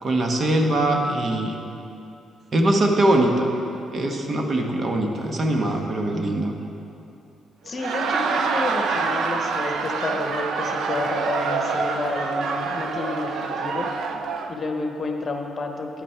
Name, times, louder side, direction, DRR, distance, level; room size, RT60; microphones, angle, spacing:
voice 1, 0.0-1.5 2.5-3.5 3.9-6.5, right 1 dB, 45° right, 3 dB, 1.1 m, -22 dB
voice 2, 7.6-13.9 14.5-16.0, left 3 dB, 45° left, 4 dB, 0.9 m, -30 dB
Laughter, 7.7-14.5, right 4 dB, 75° right, 0.6 m, -26 dB
10.0 x 8.6 x 4.5 m, 2.8 s
cardioid pair, 90°, 0 cm